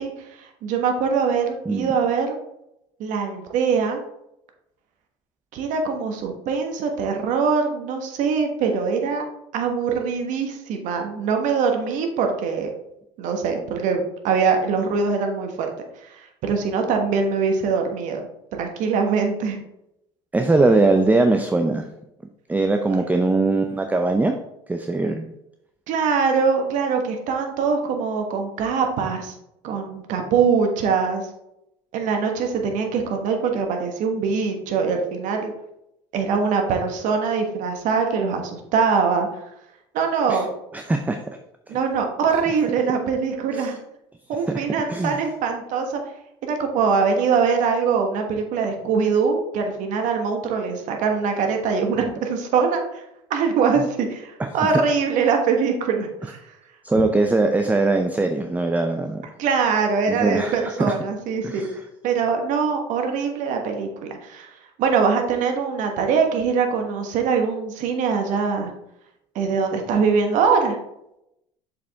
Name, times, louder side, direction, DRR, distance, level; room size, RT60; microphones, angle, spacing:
voice 1, 0.0-2.3 3.0-4.0 5.5-9.2 9.5-12.7 13.2-19.6 25.9-29.3 29.6-31.3 31.9-35.5 36.1-39.4 39.9-40.5 41.7-43.8 44.3-46.0 46.4-53.0 53.3-56.4 59.4-61.7 62.0-68.7 69.3-70.8, right 5 dB, 60° right, 4 dB, 1.4 m, -23 dB
voice 2, 20.3-21.9 22.5-24.3 24.7-25.3 40.3-40.4 40.7-41.2 41.7-41.8 43.5-43.7 44.9-45.2 54.4-54.5 56.8-59.2 60.1-60.9 61.4-61.7, right 2 dB, 10° right, 6 dB, 0.6 m, -21 dB
6.7 x 5.1 x 3.5 m, 0.83 s
hypercardioid pair, 75°, 15 cm